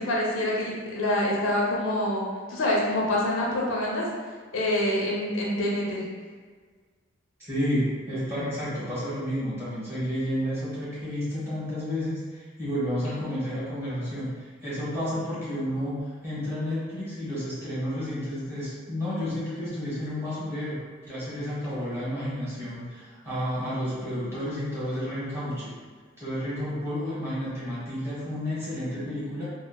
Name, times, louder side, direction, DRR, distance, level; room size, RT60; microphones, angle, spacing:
voice 1, 0.1-4.0 4.5-6.0 13.0-13.1, left 1 dB, 85° left, -4 dB, 0.6 m, -26 dB
voice 2, 7.4-20.8 21.1-25.7 26.2-29.5, equal, 10° right, -12 dB, 1.2 m, -31 dB
3.1 x 2.0 x 2.2 m, 1.5 s
head